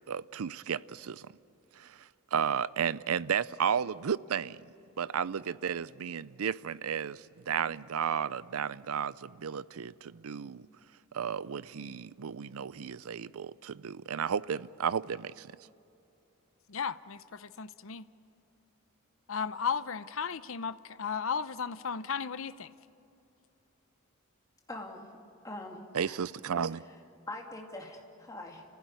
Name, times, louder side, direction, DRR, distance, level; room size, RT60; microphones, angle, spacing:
voice 1, 0.1-1.3 1.8-4.6 5.0-10.6 11.1-15.5 25.9-26.8, right 7 dB, 80° right, 0.5 m, -33 dB
voice 2, 16.7-18.0 19.3-22.7, left 6 dB, 65° left, 0.7 m, -35 dB
voice 3, 24.7-25.1 25.4-26.2 26.7-27.0 27.3-28.6, left 2 dB, 15° left, 2.3 m, -43 dB
30.0 x 15.5 x 9.5 m
head